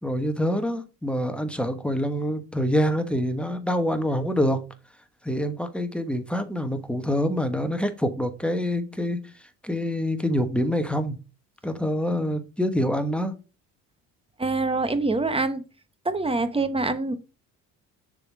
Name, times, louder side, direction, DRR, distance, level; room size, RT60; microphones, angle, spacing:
voice 1, 0.0-4.6 5.2-11.2 11.6-13.3, equal, 5° left, 1.2 m, -26 dB
voice 2, 14.4-15.6 16.0-17.1, right 3 dB, 15° right, 0.9 m, -25 dB
6.8 x 4.0 x 4.7 m
supercardioid pair, 85°, 34 cm